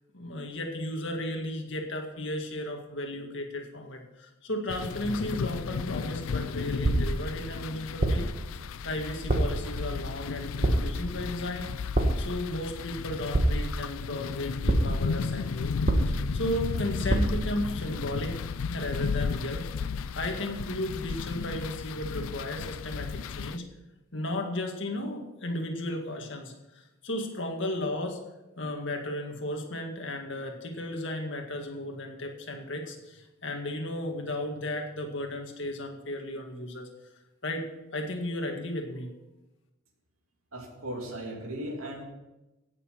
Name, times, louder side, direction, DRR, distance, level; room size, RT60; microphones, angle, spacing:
voice 1, 0.1-8.3 8.8-15.7 16.1-18.3 18.7-19.7 20.1-23.6 24.1-28.2 28.6-36.9 37.4-37.6 37.9-39.1, left 1 dB, 60° left, 2 dB, 2.0 m, -34 dB
sound 1, 4.7-23.6, left 5 dB, 80° left, 0.5 m, -34 dB
sound 2, 6.8-7.3 8.0-8.4 9.3-9.7 10.6-11.1 11.9-12.4 13.3-13.9 14.7-15.1 15.9-16.4 17.1-17.5, right 1 dB, 40° right, 1.4 m, -25 dB
voice 2, 40.5-42.0, right 1 dB, 85° right, 1 dB, 2.9 m, -37 dB
17.0 x 7.0 x 5.8 m, 1.0 s
head